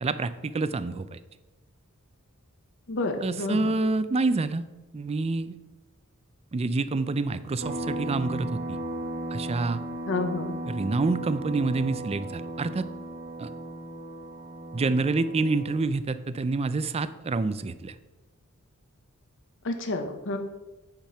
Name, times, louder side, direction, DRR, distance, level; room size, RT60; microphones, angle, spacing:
voice 1, 0.0-1.2 3.2-4.7 4.9-5.6 6.5-8.8 9.3-9.8 10.6-12.9 13.4-13.5 14.7-17.9, right 3 dB, 30° right, 13 dB, 0.4 m, -27 dB
voice 2, 2.9-3.7 10.1-10.5 19.6-20.4, left 2 dB, 60° left, 6 dB, 0.9 m, -29 dB
sound 1, 7.6-15.8, right 1 dB, 55° right, 1.1 m, -36 dB
9.0 x 5.1 x 5.6 m, 1.1 s
head